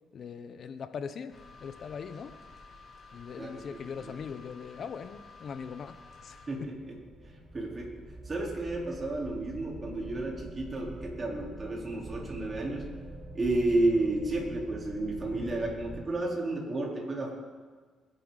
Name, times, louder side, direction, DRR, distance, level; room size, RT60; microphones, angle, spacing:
voice 1, 0.1-2.3 3.1-6.7, left 6 dB, 55° left, 11 dB, 1.0 m, -41 dB
sound 1, 1.3-6.5, left 3 dB, 40° left, 4.5 m, -52 dB
sound 2, 5.9-16.1, right 1 dB, 15° right, 3.0 m, -45 dB
voice 2, 6.5-7.0 7.2-8.0 8.3-12.9 13.3-17.3, right 2 dB, 30° right, -2 dB, 4.2 m, -31 dB
22.0 x 11.5 x 4.1 m, 1.5 s
cardioid pair, 90°, 0 cm